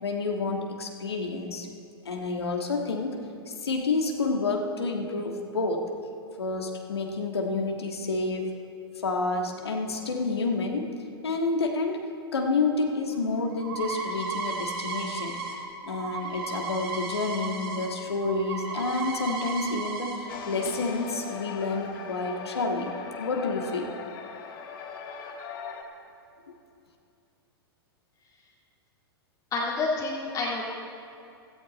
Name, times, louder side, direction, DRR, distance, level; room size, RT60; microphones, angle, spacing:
voice 1, 0.0-1.7 2.0-5.9 6.4-8.5 9.0-10.9 11.2-12.1 12.3-15.4 15.8-23.9, left 3 dB, 80° left, 2 dB, 1.7 m, -29 dB
sound 1, 13.1-17.9 18.1-20.2, right 4 dB, 65° right, 3.2 m, -34 dB
sound 2, 20.3-25.8, left 6 dB, 55° left, 1.7 m, -39 dB
voice 2, 29.5-30.6, left 3 dB, 25° left, -5 dB, 2.2 m, -28 dB
16.5 x 14.0 x 4.2 m, 2.6 s
figure-of-eight pair, 105°, 13 cm